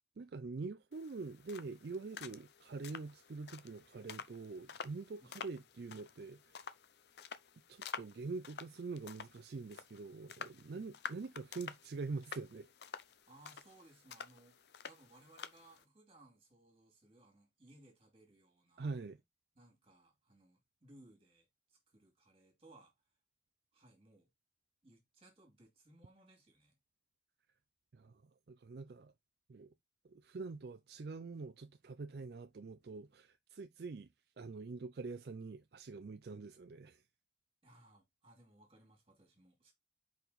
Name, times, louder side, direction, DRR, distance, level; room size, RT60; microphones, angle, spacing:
voice 1, 0.2-6.6 7.7-12.7 18.8-19.2 27.9-28.2 28.5-29.1 29.5-29.7 30.0-34.1 34.4-37.0, right 4 dB, 60° right, 0.4 m, -45 dB
sound 1, 0.9-15.8, left 6 dB, 65° left, 0.6 m, -50 dB
voice 2, 13.3-14.6 14.8-18.9 19.6-22.9 23.7-24.3 24.8-26.8 37.6-39.7, right 2 dB, 30° right, 2.5 m, -63 dB
5.2 x 4.6 x 4.0 m
head